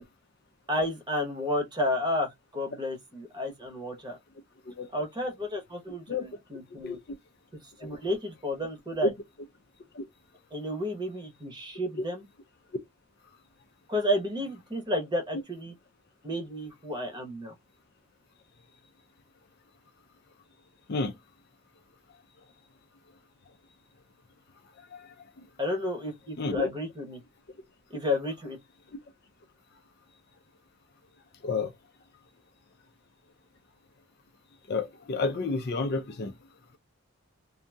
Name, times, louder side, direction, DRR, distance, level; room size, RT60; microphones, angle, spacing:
voice 1, 0.7-4.2 4.9-7.0 7.8-9.1 10.5-12.2 13.9-15.7 16.2-17.5 25.6-27.2 27.9-28.6, left 1 dB, 20° right, 0.9 m, -31 dB
voice 2, 26.4-26.7 31.4-31.7 34.7-36.3, left 3 dB, 45° left, 0.5 m, -30 dB
2.7 x 2.6 x 2.2 m
head